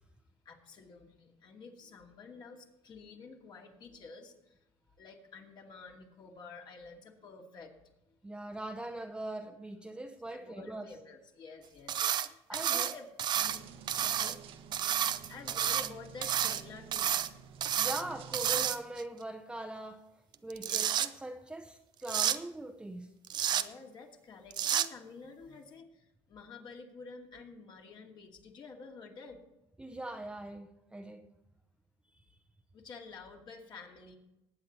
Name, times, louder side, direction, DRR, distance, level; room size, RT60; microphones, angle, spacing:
voice 1, 0.4-4.6 5.0-7.7 8.1-8.2 10.3-13.1 13.4-13.8 15.3-17.2 20.6-20.9 23.5-29.4 32.7-34.2, left 4 dB, 45° left, 2.4 m, -50 dB
voice 2, 8.2-10.9 12.5-12.9 13.9-14.4 17.8-20.1 20.4-23.1 29.8-31.3, right 1 dB, 10° right, 0.8 m, -41 dB
sound 1, 11.9-12.3 12.5-13.6 13.9-14.3 14.7-15.9 16.2-16.6 16.9-17.3 17.6-18.0 18.3-19.0 20.3-21.1 22.1-22.4 23.3-23.6 24.5-24.9, right 10 dB, 45° right, 0.6 m, -30 dB
sound 2, 13.3-18.7, right 7 dB, 60° right, 1.1 m, -51 dB
19.5 x 8.7 x 4.2 m
cardioid pair, 115°, 11 cm